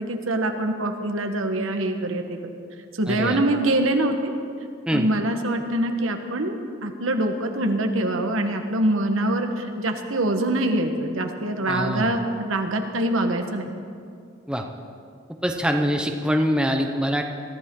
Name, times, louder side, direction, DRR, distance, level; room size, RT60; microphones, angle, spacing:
voice 1, 0.0-2.5 3.0-4.3 4.9-6.6 6.8-13.7, right 1 dB, 85° right, 5 dB, 1.3 m, -24 dB
voice 2, 3.1-3.4 4.9-5.1 11.7-12.1 14.5-14.6 15.4-17.2, equal, 5° right, 3 dB, 0.8 m, -24 dB
22.0 x 14.0 x 3.8 m, 2.3 s
head